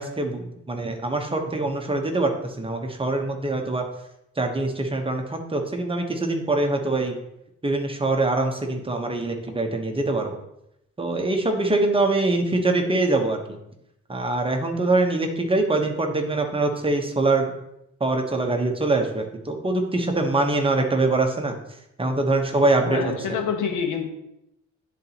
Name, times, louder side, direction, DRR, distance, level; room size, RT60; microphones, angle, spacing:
voice 1, 0.0-3.9 4.4-7.1 7.6-10.4 11.0-13.6 14.1-17.5 18.0-21.6 22.0-23.0 23.3-23.4, right 2 dB, 20° right, 3 dB, 1.0 m, -24 dB
voice 2, 22.8-24.1, left 6 dB, 80° left, 4 dB, 1.1 m, -26 dB
10.5 x 4.0 x 2.9 m, 0.83 s
cardioid pair, 90°, 30 cm